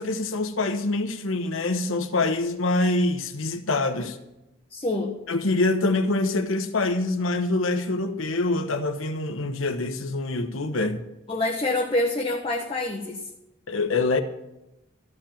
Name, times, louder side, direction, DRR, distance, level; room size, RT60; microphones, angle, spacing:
voice 1, 0.0-4.2 5.3-11.0 13.7-14.2, left 2 dB, 85° left, 1.1 m, -25 dB
voice 2, 4.7-5.2 11.3-13.2, left 2 dB, 25° left, 1.1 m, -26 dB
13.5 x 4.9 x 9.0 m
head